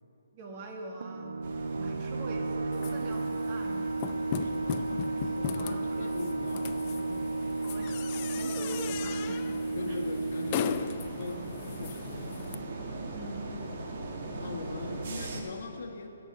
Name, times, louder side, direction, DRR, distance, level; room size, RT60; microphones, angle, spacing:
voice 1, 0.3-1.4 1.7-3.9 5.6-6.1 7.6-9.6 9.9-10.0 13.1-13.6, right 2 dB, 35° right, 1 dB, 1.7 m, -43 dB
sound 1, 1.0-12.3, right 3 dB, 75° right, 0.4 m, -34 dB
sound 2, 1.4-15.4, right 2 dB, 50° right, 1.6 m, -41 dB
voice 2, 1.8-2.3 4.4-7.3 9.7-12.8 13.8-16.1, left 3 dB, 60° left, 2 dB, 1.3 m, -41 dB
sound 3, 2.7-12.6, left 10 dB, 35° left, 0.4 m, -39 dB
13.0 x 5.5 x 8.5 m, 2.9 s
hypercardioid pair, 145°, 0 cm